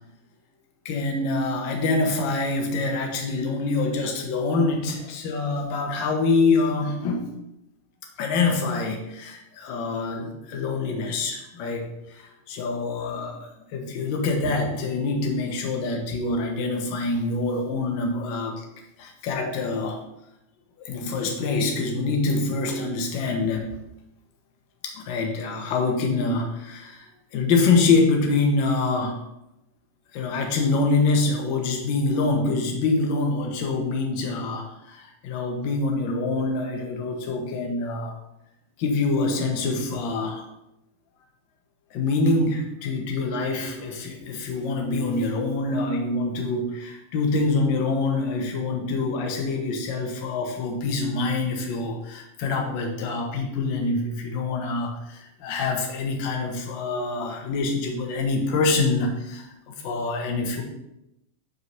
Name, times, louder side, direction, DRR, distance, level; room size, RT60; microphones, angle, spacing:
voice 1, 0.8-7.3 8.2-18.6 19.0-20.0 20.8-23.7 24.8-27.0 27.3-29.2 30.1-38.2 38.8-40.4 41.9-60.6, left 3 dB, 45° left, 2 dB, 1.5 m, -25 dB
5.5 x 4.7 x 5.7 m, 0.88 s
figure-of-eight pair, 90°, 0 cm